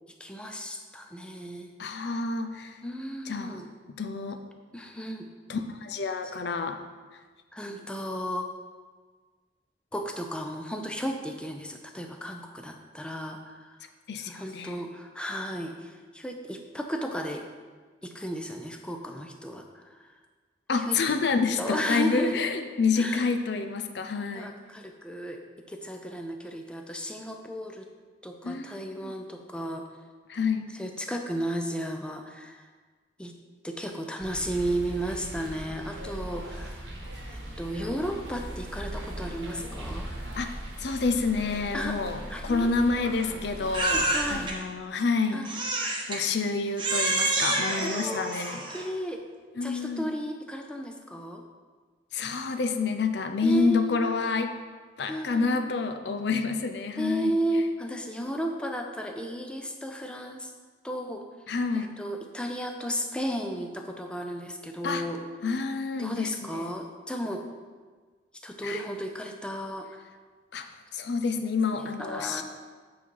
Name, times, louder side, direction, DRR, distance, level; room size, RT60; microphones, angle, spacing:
voice 1, 0.2-1.7 2.1-2.2 2.8-3.7 4.7-5.3 7.5-8.4 9.9-13.8 14.2-17.4 18.0-20.1 20.8-21.0 21.6-22.4 23.0-23.2 24.3-25.4 25.7-27.9 28.2-29.9 30.7-32.7 33.2-33.3 33.6-36.9 37.3-40.1 41.7-42.0 42.3-43.1 43.9-44.5 45.3-45.5 47.8-49.2 49.6-51.4 53.4-54.1 55.1-55.7 57.0-60.5 60.8-61.3 61.7-65.3 66.0-67.4 68.4-70.0 71.7-72.4, equal, 5° left, 3 dB, 0.5 m, -34 dB
voice 2, 1.8-2.8 3.3-3.6 4.0-4.4 5.5-6.8 14.1-14.8 20.7-24.5 28.4-29.1 30.3-30.7 40.4-40.5 40.8-45.7 46.1-48.6 49.6-50.1 52.1-54.5 55.0-57.4 61.5-62.0 64.8-65.0 65.4-66.7 68.6-68.8 70.5-70.7 70.9-72.4, left 4 dB, 65° left, 6 dB, 0.5 m, -28 dB
sound 1, 34.2-44.5, right 1 dB, 70° right, 1.1 m, -39 dB
Crying sobbing, 43.7-44.5 45.4-46.2 46.8-48.9, right 2 dB, 25° right, 0.9 m, -28 dB
8.4 x 4.0 x 4.6 m, 1.5 s
head